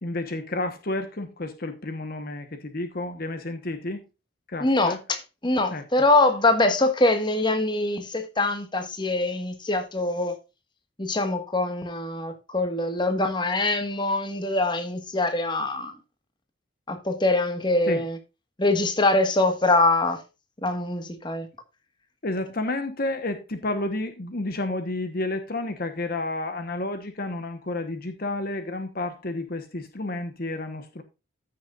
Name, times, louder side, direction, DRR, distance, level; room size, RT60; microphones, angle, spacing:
voice 1, 0.0-4.0 4.5-5.0 5.7-5.9 17.9-18.0 22.2-31.0, left 2 dB, 50° left, 1.1 m, -31 dB
voice 2, 4.6-5.2 5.4-10.4 11.0-15.9 16.9-18.2 18.6-20.2 20.6-21.5, left 2 dB, 25° left, 1.4 m, -23 dB
14.5 x 6.6 x 2.4 m
head